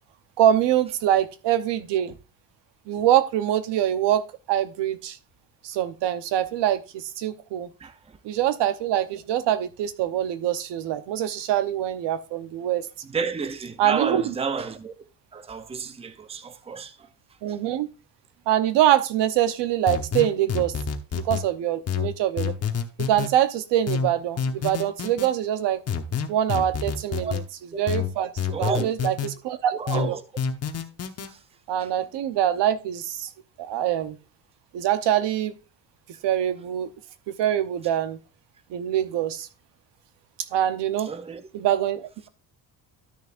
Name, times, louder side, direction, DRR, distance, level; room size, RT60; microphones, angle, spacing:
voice 1, 0.4-2.2 2.9-5.2 5.6-7.7 8.2-12.9 13.8-14.3 17.4-17.9 18.5-20.7 21.1-22.5 23.0-25.8 26.3-27.4 27.8-28.3 28.6-30.2 31.7-33.3 33.6-34.2 34.7-35.5 36.2-36.9 37.3-38.2 38.7-39.5 40.5-41.1 41.5-42.3, right 11 dB, 80° right, 1.0 m, -24 dB
voice 2, 13.1-14.9 15.3-17.1 27.2-27.3 27.7-27.8 28.5-28.9 29.7-30.2 31.3-31.4 31.8-31.9 41.1-41.4, right 5 dB, 15° right, 0.6 m, -31 dB
sound 1, 19.9-21.4 21.9-23.3 23.9-25.3 25.9-27.4 27.9-29.3 29.9-31.3, left 6 dB, 35° left, 1.0 m, -28 dB
12.5 x 6.5 x 2.5 m
cardioid pair, 130°, 42 cm